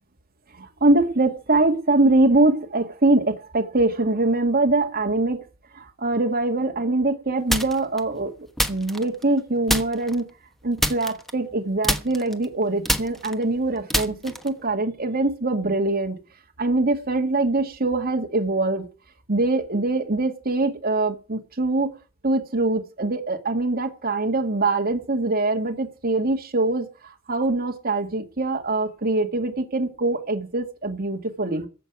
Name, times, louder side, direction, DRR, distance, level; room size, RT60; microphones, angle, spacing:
voice 1, 0.6-5.4 5.8-8.3 8.7-10.2 10.6-16.2 16.6-18.9 19.3-22.0 22.2-31.7, right 2 dB, 45° right, 2.0 m, -23 dB
sound 1, 7.5-8.0 8.6-9.4 9.7-10.2 10.8-11.6 11.8-14.6, equal, ahead, 1.2 m, -26 dB
15.0 x 6.5 x 9.3 m
head